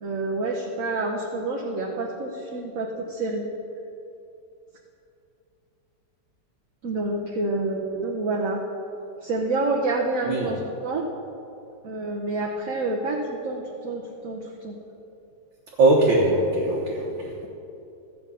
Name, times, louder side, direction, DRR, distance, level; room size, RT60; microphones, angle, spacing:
voice 1, 0.0-3.4 6.8-8.6 9.2-11.1 11.8-14.8, right 2 dB, 50° right, -2 dB, 1.2 m, -28 dB
voice 2, 15.8-17.4, right 2 dB, 85° right, -4 dB, 2.0 m, -21 dB
13.5 x 7.4 x 5.6 m, 2.7 s
omnidirectional pair, 2.0 m